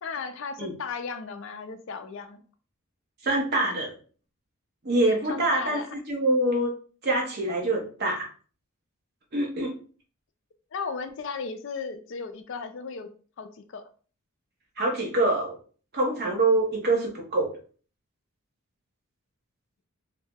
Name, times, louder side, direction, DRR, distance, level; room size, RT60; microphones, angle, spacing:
voice 1, 0.0-2.4 5.3-6.0 10.7-13.1 13.4-13.8, left 5 dB, 55° left, 8 dB, 0.4 m, -35 dB
voice 2, 3.2-3.9 4.8-6.7 7.0-8.3 9.3-9.7 14.8-15.6 15.9-17.5, right 2 dB, 45° right, 1 dB, 0.7 m, -25 dB
2.6 x 2.0 x 3.4 m, 0.40 s
head